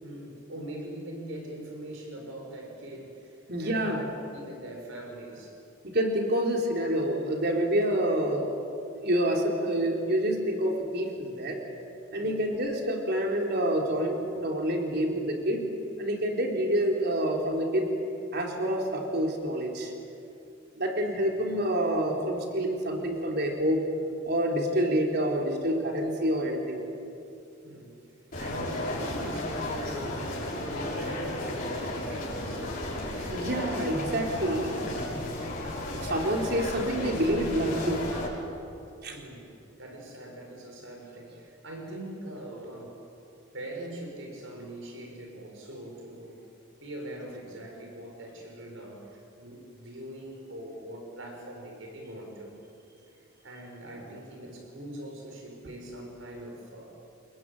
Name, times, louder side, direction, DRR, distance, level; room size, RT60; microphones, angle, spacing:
voice 1, 0.0-5.6 12.2-12.4 21.1-21.4 27.6-28.0 28.4-34.3 39.1-39.5 39.8-43.0 43.5-46.4 46.8-52.6 53.4-56.9, right 1 dB, 70° right, 2 dB, 6.6 m, -42 dB
voice 2, 3.5-4.2 5.8-8.5 9.0-11.6 12.1-15.7 16.0-18.0 18.3-19.9 20.8-23.8 24.2-26.8 33.3-35.2 35.9-38.0 39.0-39.2, right 1 dB, 50° right, 1 dB, 4.0 m, -27 dB
sound 1, 28.3-38.3, left 1 dB, 40° left, 6.7 m, -34 dB
29.0 x 21.5 x 9.1 m, 2.7 s
head